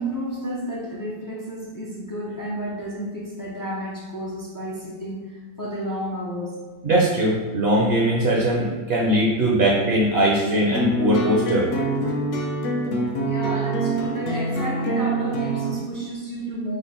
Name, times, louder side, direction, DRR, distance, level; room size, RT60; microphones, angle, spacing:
voice 1, 0.0-6.6 13.2-16.8, right 1 dB, 30° left, -4 dB, 0.3 m, -31 dB
voice 2, 6.8-11.7, right 1 dB, 60° right, -3 dB, 0.8 m, -20 dB
sound 1, 10.7-15.8, right 2 dB, 80° left, 1.0 m, -25 dB
5.1 x 2.2 x 4.0 m, 1.4 s
omnidirectional pair, 1.3 m